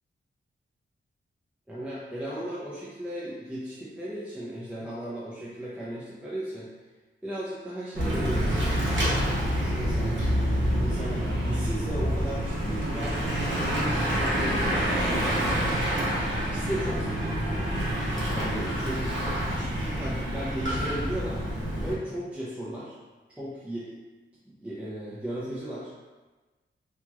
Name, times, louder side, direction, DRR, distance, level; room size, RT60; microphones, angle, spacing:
voice 1, 1.7-6.7 7.2-8.6 9.5-10.2 10.8-15.7 16.4-17.4 18.3-19.2 19.6-21.4 21.8-23.0 23.3-24.0 24.5-25.9, right 1 dB, 5° right, -8 dB, 0.4 m, -36 dB
Bicycle / Mechanisms, 7.9-21.9, equal, 65° right, 0.8 m, -27 dB
2.9 x 2.8 x 2.3 m, 1.2 s
wide cardioid pair, 155°, 21 cm